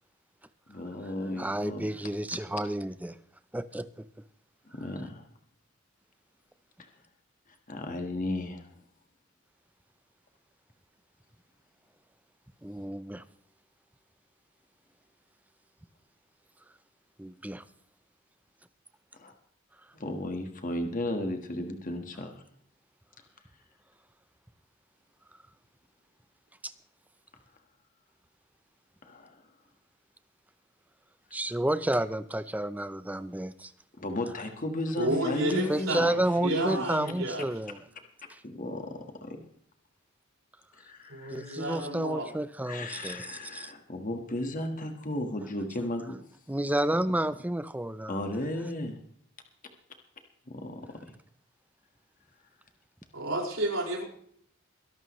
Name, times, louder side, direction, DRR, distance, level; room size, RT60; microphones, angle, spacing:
voice 1, 0.7-1.9 4.7-4.9 7.7-8.7 19.9-22.3 29.0-29.4 34.0-36.8 38.4-38.9 39.2-39.4 40.8-41.6 42.6-46.2 48.1-49.0 50.5-51.0, left 1 dB, 40° left, 5 dB, 1.5 m, -34 dB
voice 2, 1.4-3.2 3.5-3.8 12.6-13.2 17.2-17.6 26.6-26.7 31.3-33.7 35.7-37.8 38.3-38.4 41.3-43.7 46.5-48.2, right 1 dB, 5° right, 14 dB, 0.5 m, -31 dB
voice 3, 34.9-36.1 36.4-37.4 41.1-42.3 53.1-54.0, right 1 dB, 70° right, -1 dB, 5.0 m, -31 dB
22.0 x 12.0 x 3.1 m, 0.64 s
head